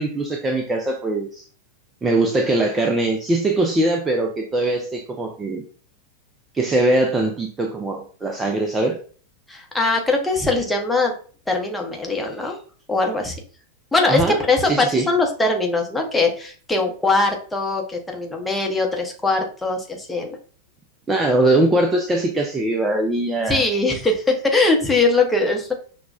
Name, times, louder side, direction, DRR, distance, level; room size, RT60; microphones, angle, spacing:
voice 1, 0.0-1.4 2.0-5.6 6.5-9.0 14.1-14.4 14.6-15.1 21.1-23.6, right 2 dB, 15° right, 3 dB, 0.5 m, -21 dB
voice 2, 9.5-11.1 11.5-12.6 12.9-13.4 13.9-20.4 23.5-25.7, left 3 dB, 5° left, 1 dB, 0.8 m, -21 dB
5.9 x 2.2 x 2.4 m, 0.41 s
figure-of-eight pair, 90°, 0 cm